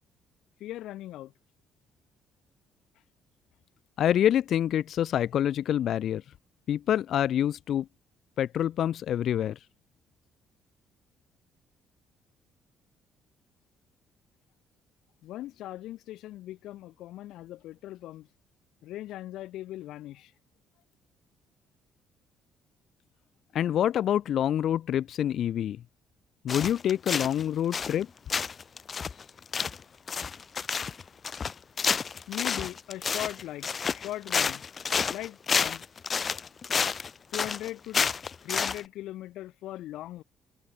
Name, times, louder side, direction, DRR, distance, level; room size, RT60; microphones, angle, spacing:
voice 1, 0.6-1.3 2.9-3.0 15.2-18.3 18.8-20.3 32.3-34.6 35.0-35.8 37.3-38.0 38.4-40.2, left 14 dB, 75° left, 5.1 m, -39 dB
voice 2, 4.0-6.2 6.7-7.9 8.4-9.6 23.5-25.8 26.4-28.1, left 10 dB, 55° left, 0.7 m, -26 dB
sound 1, 26.5-27.4 27.7-28.0 28.3-38.8, left 6 dB, 30° left, 1.9 m, -29 dB
cardioid pair, 140°, 0 cm